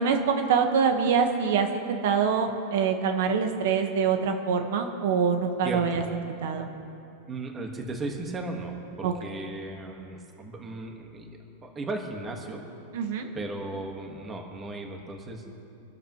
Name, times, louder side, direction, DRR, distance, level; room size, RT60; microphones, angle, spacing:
voice 1, 0.0-6.7 9.0-9.1 12.9-13.3, right 6 dB, 65° right, 5 dB, 1.3 m, -25 dB
voice 2, 5.6-6.0 7.3-11.3 11.6-12.6 13.3-15.4, right 2 dB, 15° right, 2 dB, 1.5 m, -36 dB
25.5 x 13.0 x 3.1 m, 2.7 s
supercardioid pair, 155°, 0 cm